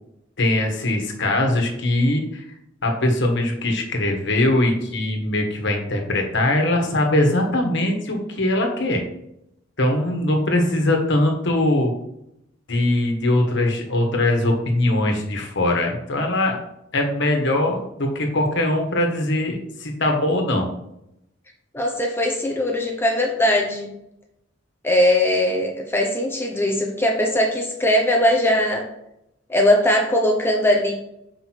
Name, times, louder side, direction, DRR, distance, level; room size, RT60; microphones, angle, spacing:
voice 1, 0.4-2.4 2.8-9.0 9.8-11.9 12.7-16.6 16.9-20.7, left 1 dB, 65° left, 2 dB, 1.4 m, -21 dB
voice 2, 21.7-23.9 24.8-28.8 29.5-30.9, left 1 dB, 10° left, 1 dB, 0.7 m, -20 dB
6.2 x 5.0 x 4.5 m, 0.81 s
head